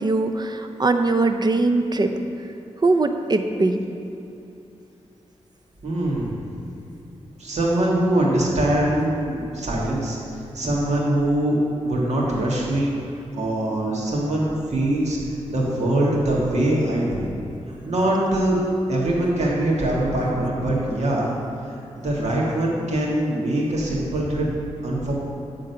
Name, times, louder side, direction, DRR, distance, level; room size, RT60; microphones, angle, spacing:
voice 1, 0.0-2.1 2.8-3.8, right 3 dB, 35° right, 7 dB, 0.5 m, -21 dB
voice 2, 5.8-6.4 7.4-10.2 10.5-11.6 11.8-12.9 13.3-17.2 17.7-18.6 18.9-21.3 21.7-24.5 24.8-25.1, right 1 dB, 70° right, -4 dB, 1.7 m, -23 dB
9.2 x 3.8 x 5.6 m, 2.8 s
cardioid pair, 70°, 12 cm